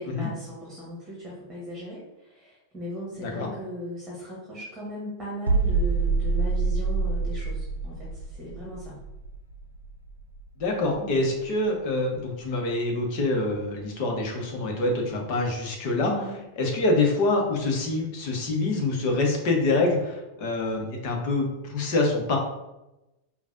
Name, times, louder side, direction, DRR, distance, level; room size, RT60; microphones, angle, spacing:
voice 1, 0.0-9.0 10.9-11.3 16.0-16.3, equal, 15° right, -6 dB, 1.3 m, -38 dB
voice 2, 3.2-3.5 10.6-16.1 16.6-22.4, left 2 dB, 45° left, 1 dB, 1.0 m, -26 dB
sound 1, 5.5-11.2 11.4-11.7, right 4 dB, 85° right, 0.4 m, -27 dB
5.1 x 2.3 x 2.6 m, 0.94 s
figure-of-eight pair, 90°, 0 cm